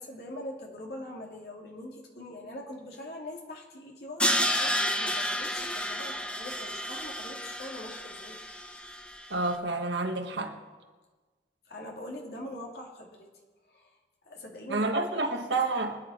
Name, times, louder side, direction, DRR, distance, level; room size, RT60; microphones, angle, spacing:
voice 1, 0.0-8.4 11.7-13.3 13.7-14.0 14.2-15.6, left 1 dB, 55° left, 2.7 m, -43 dB
Crash cymbal, 4.2-9.2, equal, 5° left, 0.7 m, -31 dB
voice 2, 9.3-10.6 14.7-16.0, right 3 dB, 80° right, 1.5 m, -29 dB
24.5 x 9.9 x 4.3 m
head